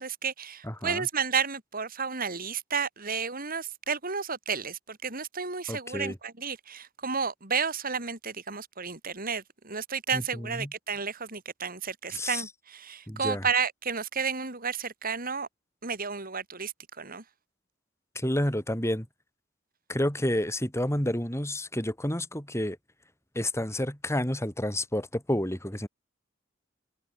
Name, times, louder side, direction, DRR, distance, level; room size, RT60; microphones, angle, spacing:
voice 1, 0.0-15.5 15.8-17.2, right 6 dB, 45° right, 4.5 m, -32 dB
voice 2, 0.6-1.1 5.7-6.2 10.1-10.7 12.1-12.4 13.1-13.5 18.2-19.1 19.9-22.8 23.4-25.9, left 1 dB, 15° left, 5.9 m, -30 dB
head